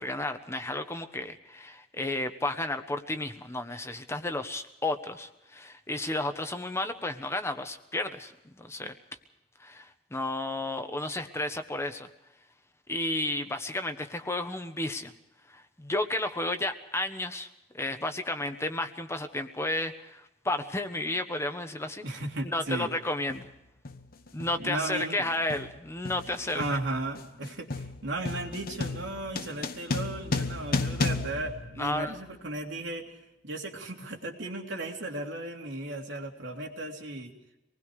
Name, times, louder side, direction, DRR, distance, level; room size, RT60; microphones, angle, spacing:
voice 1, 0.0-8.9 9.6-12.1 12.9-15.1 15.5-17.5 17.7-22.0 22.5-23.5 24.3-26.6 31.8-32.1, left 2 dB, 15° left, 7 dB, 1.2 m, -32 dB
voice 2, 22.0-22.9 24.6-25.3 26.5-33.0 33.4-37.3, right 2 dB, 85° right, 1 dB, 3.2 m, -35 dB
sound 1, 22.2-22.4 23.3-23.6 23.9-32.4, left 3 dB, 55° left, 1.2 m, -34 dB
26.0 x 20.0 x 5.0 m, 0.90 s
head